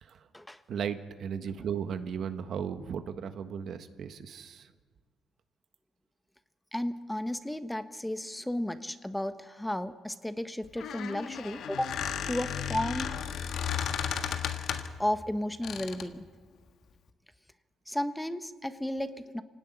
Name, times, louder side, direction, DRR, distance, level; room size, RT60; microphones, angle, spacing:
voice 1, 0.7-4.7, right 7 dB, 65° right, 8 dB, 1.5 m, -36 dB
voice 2, 6.7-11.9 12.3-13.1 15.0-16.3 17.9-19.4, left 1 dB, 5° left, 10 dB, 1.2 m, -33 dB
Squeak, 10.6-15.0 15.6-16.1, left 8 dB, 75° left, 1.7 m, -34 dB
26.0 x 17.5 x 9.9 m, 1.5 s
cardioid pair, 90°, 0 cm